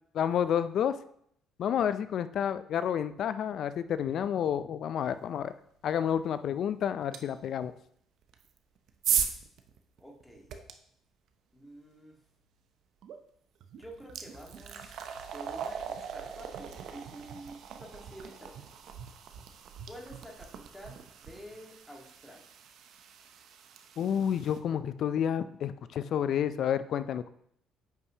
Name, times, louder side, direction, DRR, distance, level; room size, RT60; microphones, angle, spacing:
voice 1, 0.1-0.9 1.6-5.5 5.8-7.7 24.0-27.3, left 9 dB, 65° left, 13 dB, 0.4 m, -30 dB
sound 1, 7.1-7.2 8.3-10.7 13.0-13.2 13.6-24.6, right 8 dB, 70° right, 0.7 m, -38 dB
voice 2, 10.0-10.5 11.5-12.2 13.8-18.7 19.9-22.5, right 1 dB, 10° left, -1 dB, 1.8 m, -49 dB
9.1 x 5.4 x 2.9 m, 0.69 s
supercardioid pair, 70°, 0 cm